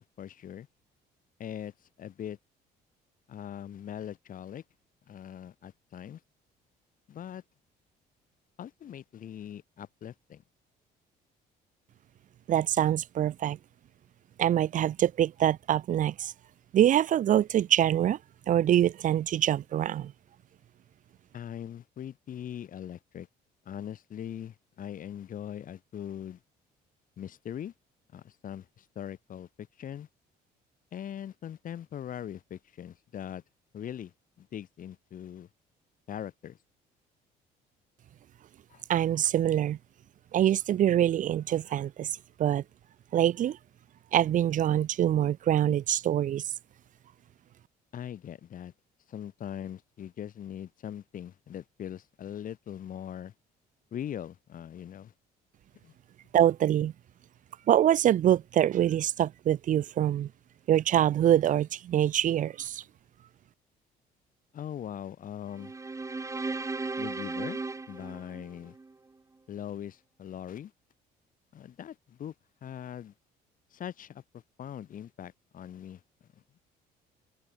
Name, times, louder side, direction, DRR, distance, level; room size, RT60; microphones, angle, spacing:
voice 1, 0.2-0.7 1.4-1.7 2.0-2.4 3.3-4.6 5.1-6.2 7.1-7.4 8.6-10.4 21.3-23.3 23.7-26.4 27.2-27.7 28.1-30.1 30.9-33.4 33.7-34.1 34.4-35.5 36.1-36.6 38.7-38.8 47.9-48.7 49.1-53.3 53.9-55.1 55.8-55.9 64.5-65.7 67.0-67.6 67.9-68.8 69.5-70.7 71.5-72.3 72.6-73.1 73.7-74.2 74.6-76.0, left 10 dB, 55° left, 5.7 m, -41 dB
voice 2, 12.5-13.6 14.4-16.3 16.7-18.2 18.5-20.1 38.9-39.8 40.3-42.6 43.1-43.6 44.1-46.5 56.3-56.9 57.7-60.3 60.7-62.8, right 11 dB, 50° right, 0.7 m, -25 dB
sound 1, 65.5-68.9, right 3 dB, 20° right, 2.9 m, -36 dB
cardioid pair, 110°, 17 cm